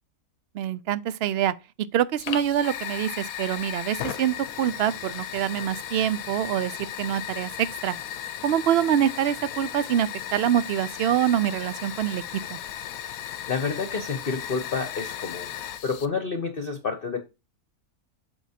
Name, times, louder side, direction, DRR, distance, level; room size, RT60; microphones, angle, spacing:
voice 1, 0.5-1.5 1.9-8.0 8.4-12.6, right 10 dB, 75° right, 0.5 m, -25 dB
Fire, 2.2-16.1, left 10 dB, 70° left, 1.1 m, -36 dB
voice 2, 13.5-15.5 15.8-17.2, left 5 dB, 45° left, 0.9 m, -29 dB
8.0 x 6.3 x 2.8 m
omnidirectional pair, 1.6 m